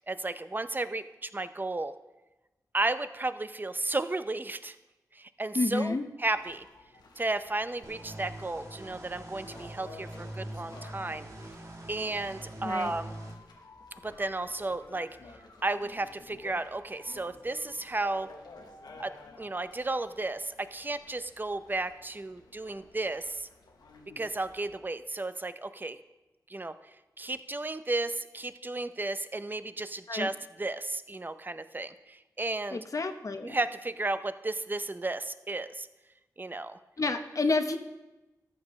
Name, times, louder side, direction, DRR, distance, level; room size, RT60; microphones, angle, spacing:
voice 1, 0.0-1.9 2.7-4.8 5.1-6.6 7.2-11.3 11.9-13.1 14.0-15.2 15.6-18.3 19.0-23.5 24.2-26.0 26.5-26.8 27.2-32.8 33.4-35.9 36.4-36.8, right 2 dB, 30° right, 12 dB, 0.6 m, -33 dB
voice 2, 5.5-6.1 12.6-12.9 30.1-30.3 32.7-33.5 37.0-37.8, left 3 dB, 50° left, 7 dB, 0.9 m, -29 dB
sound 1, 6.3-24.8, left 3 dB, 90° left, 1.0 m, -53 dB
sound 2, 7.8-13.3, right 1 dB, 50° right, 1.4 m, -44 dB
14.0 x 7.4 x 3.1 m, 1.1 s
cardioid pair, 45°, 7 cm